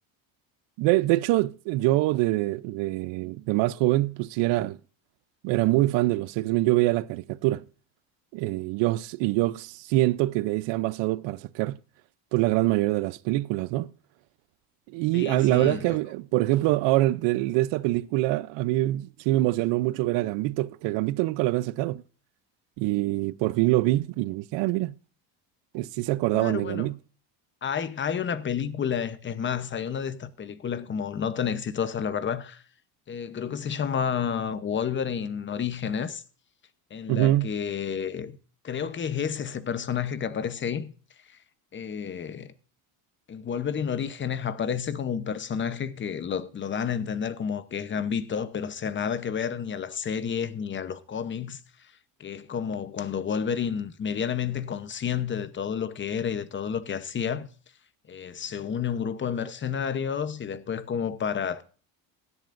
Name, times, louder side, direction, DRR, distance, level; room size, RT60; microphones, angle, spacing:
voice 1, 0.8-4.8 5.4-7.6 8.3-11.8 12.3-13.9 14.9-22.0 22.8-24.9 25.7-27.0 37.1-37.5, right 17 dB, 70° right, 0.7 m, -24 dB
voice 2, 15.1-16.0 26.3-26.9 27.6-32.6 33.1-36.2 36.9-38.3 38.6-40.9 41.3-41.4 41.7-42.5 43.3-51.6 52.2-57.5 58.1-61.6, left 7 dB, 25° left, 0.9 m, -30 dB
16.5 x 11.0 x 2.6 m
cardioid pair, 140°, 45 cm